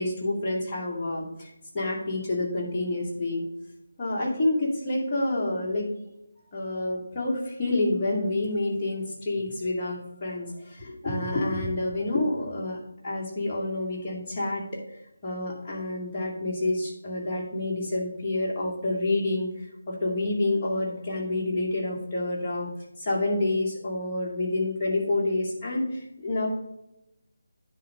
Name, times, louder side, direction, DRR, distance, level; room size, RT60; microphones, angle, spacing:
voice 1, 0.0-3.4 4.0-5.9 6.5-12.8 13.0-22.7 23.0-26.5, left 2 dB, 25° left, -5 dB, 2.3 m, -28 dB
10.0 x 3.9 x 5.1 m, 0.85 s
figure-of-eight pair, 155°, 0 cm